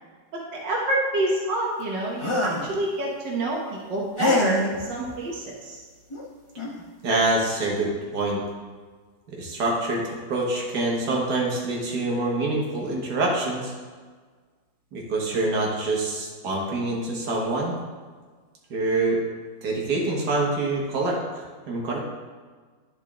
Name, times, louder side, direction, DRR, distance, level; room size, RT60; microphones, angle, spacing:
voice 1, 0.5-3.6 3.9-5.8, right 1 dB, 90° right, -2 dB, 1.7 m, -27 dB
sound 1, 2.2-2.7 4.2-4.7 6.1-6.2 6.6-6.8, left 2 dB, 30° left, 0.6 m, -25 dB
voice 2, 7.0-8.4 9.4-13.7 14.9-17.8 18.7-19.2 19.6-21.2 21.7-22.0, right 2 dB, 70° right, -2 dB, 1.8 m, -25 dB
10.5 x 4.5 x 3.6 m, 1.5 s
omnidirectional pair, 1.9 m